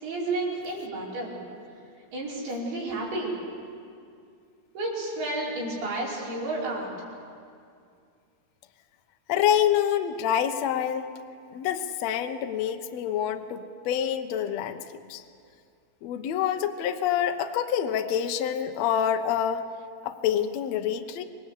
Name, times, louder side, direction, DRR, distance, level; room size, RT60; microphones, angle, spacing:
voice 1, 0.0-1.3 2.1-3.3 4.7-6.9, right 2 dB, 75° right, -6 dB, 7.7 m, -31 dB
voice 2, 9.3-11.0 11.5-14.8 15.1-15.2 16.0-19.6 20.0-21.2, left 9 dB, 75° left, 7 dB, 1.6 m, -26 dB
25.0 x 21.0 x 8.3 m, 2.4 s
omnidirectional pair, 4.5 m